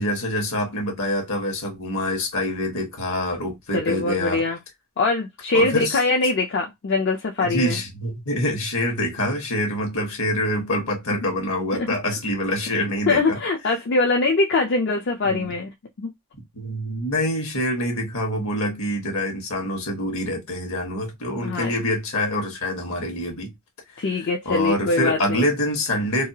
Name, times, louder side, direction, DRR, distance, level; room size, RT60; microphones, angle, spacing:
voice 1, 0.0-4.4 5.5-6.0 7.4-13.4 15.2-15.5 16.5-23.5 24.4-26.3, left 1 dB, 75° left, 1.3 m, -26 dB
voice 2, 3.7-4.6 5.0-7.8 11.8-12.0 13.1-15.7 16.0-16.1 21.4-21.7 24.0-25.5, left 3 dB, 55° left, 0.4 m, -22 dB
2.6 x 2.3 x 2.8 m
head